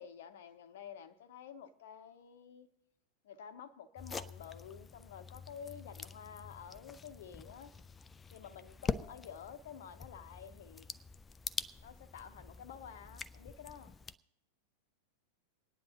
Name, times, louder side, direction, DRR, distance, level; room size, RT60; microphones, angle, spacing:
voice 1, 0.0-2.7 3.2-7.8 8.3-10.9 11.8-14.0, left 8 dB, 55° left, 0.7 m, -50 dB
sound 1, 4.0-14.2, left 4 dB, 15° left, 0.3 m, -45 dB
27.5 x 9.7 x 2.9 m
figure-of-eight pair, 90°, 0 cm